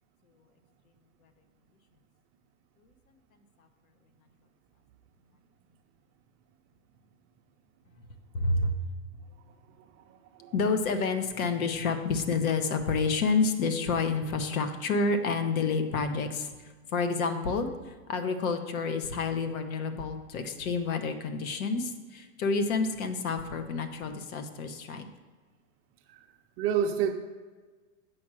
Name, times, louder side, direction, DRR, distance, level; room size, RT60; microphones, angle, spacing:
voice 1, 8.3-8.8 10.5-25.1, left 4 dB, 65° left, 7 dB, 1.4 m, -29 dB
voice 2, 10.1-10.5 26.1-26.2 26.6-27.1, right 8 dB, 30° right, 6 dB, 0.6 m, -29 dB
8.3 x 5.0 x 7.6 m, 1.4 s
hypercardioid pair, 130°, 45 cm